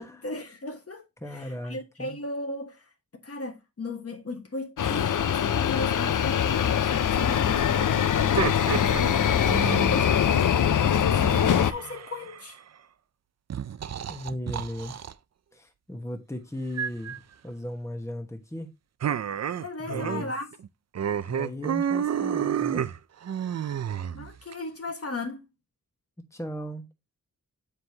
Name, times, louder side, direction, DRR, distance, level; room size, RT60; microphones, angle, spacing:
voice 1, 0.0-2.9 3.2-12.6 19.6-20.5 24.1-25.4, left 2 dB, 45° left, 1.2 m, -37 dB
voice 2, 1.2-2.2 14.1-14.9 15.5-17.2 17.4-18.7 19.8-20.3 21.3-22.9 26.3-26.9, left 1 dB, 10° left, 1.1 m, -36 dB
sound 1, 4.8-11.7, left 9 dB, 65° left, 0.5 m, -23 dB
sound 2, 8.1-10.1 11.2-12.6 13.5-15.1 16.8-17.2 19.0-20.3 20.5-20.7 20.9-24.5, right 8 dB, 50° right, 0.4 m, -30 dB
7.5 x 4.7 x 2.8 m
wide cardioid pair, 75°, 34 cm